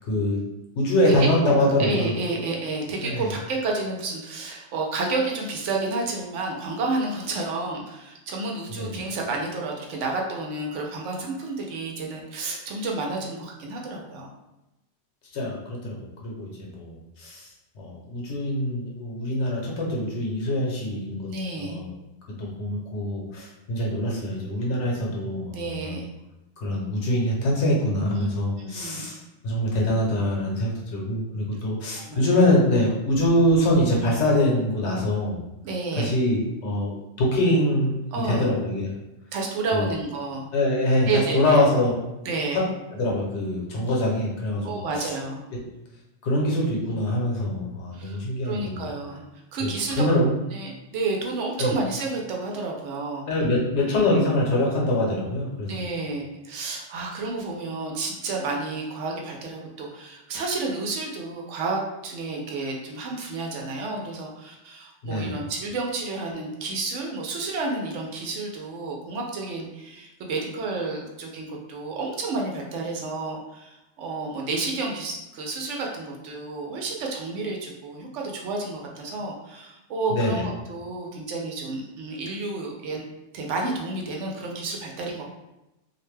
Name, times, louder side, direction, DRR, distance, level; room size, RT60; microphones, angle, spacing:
voice 1, 0.1-0.4 0.8-2.1 3.0-3.3 8.7-9.0 15.3-17.5 17.7-21.3 21.6-21.9 22.4-26.0 26.6-29.2 29.4-35.4 36.0-37.9 38.2-38.9 39.7-39.9 40.5-41.9 42.5-42.6 42.9-45.1 45.5-45.6 46.2-48.9 49.6-49.7 50.0-50.3 51.6-51.7 53.3-55.8 65.0-65.4 80.1-80.4, left 1 dB, 75° left, -2 dB, 1.1 m, -24 dB
voice 2, 1.1-1.5 1.8-14.3 21.3-21.8 25.5-26.1 28.1-28.3 28.6-29.1 32.0-32.5 35.6-36.1 38.1-38.5 39.3-40.5 41.1-41.6 42.2-42.7 44.6-45.4 47.9-49.2 49.5-50.0 50.5-53.3 55.6-83.0 83.3-85.2, right 3 dB, 85° right, 0 dB, 0.9 m, -30 dB
2.5 x 2.1 x 3.1 m, 0.95 s
omnidirectional pair, 1.2 m